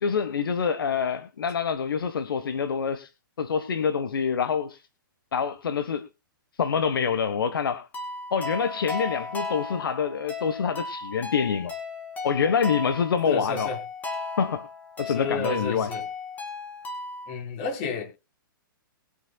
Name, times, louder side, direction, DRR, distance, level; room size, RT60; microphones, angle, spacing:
voice 1, 0.0-3.1 3.4-4.8 5.3-6.1 6.6-7.9 8.3-11.7 12.2-13.7 14.4-14.7 15.0-15.9, left 6 dB, 80° left, 12 dB, 1.5 m, -26 dB
sound 1, 7.9-17.3, left 3 dB, 15° left, 4.0 m, -36 dB
voice 2, 13.3-13.8 15.1-16.0 17.3-18.0, left 4 dB, 40° left, 2 dB, 5.7 m, -31 dB
22.5 x 8.5 x 2.4 m, 0.28 s
hypercardioid pair, 145°, 12 cm